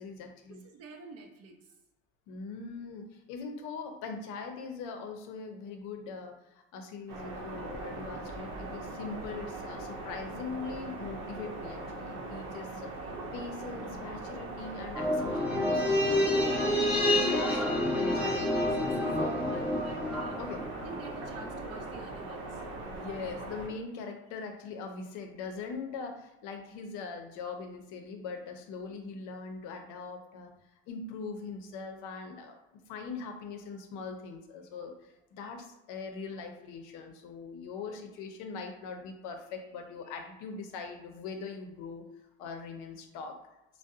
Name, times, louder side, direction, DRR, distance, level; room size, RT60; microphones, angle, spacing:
voice 1, 0.0-0.6 2.3-13.0 13.3-15.8 16.1-17.6 17.9-18.4 20.4-20.7 22.9-30.5 30.9-32.6 32.9-42.1 42.4-43.4, left 4 dB, 75° left, 4 dB, 0.6 m, -41 dB
voice 2, 0.7-1.6 18.2-20.4 20.8-22.5, right 4 dB, 50° right, 3 dB, 0.5 m, -47 dB
sound 1, 7.1-23.7, right 2 dB, 90° right, 0.7 m, -40 dB
sound 2, 14.9-21.5 21.8-21.9, left 1 dB, 5° right, 0.6 m, -29 dB
2.6 x 2.1 x 2.4 m, 0.97 s
supercardioid pair, 105°, 31 cm